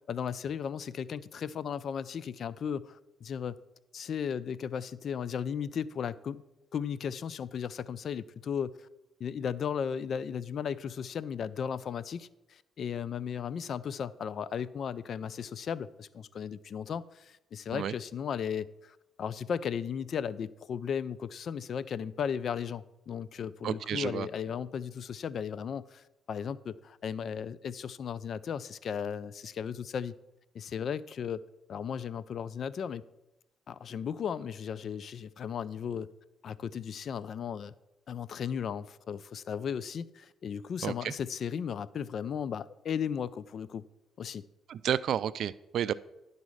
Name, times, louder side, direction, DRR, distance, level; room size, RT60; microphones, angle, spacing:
voice 1, 0.0-3.6 3.9-6.4 6.7-8.9 9.2-30.1 30.5-31.4 31.7-33.0 33.7-36.1 36.4-37.7 38.1-43.8 44.2-44.5, left 7 dB, 60° left, 18 dB, 0.3 m, -36 dB
voice 2, 23.6-24.3 40.8-41.1 44.7-45.9, right 9 dB, 70° right, 17 dB, 0.3 m, -31 dB
11.0 x 4.1 x 6.3 m, 0.94 s
cardioid pair, 90°, 0 cm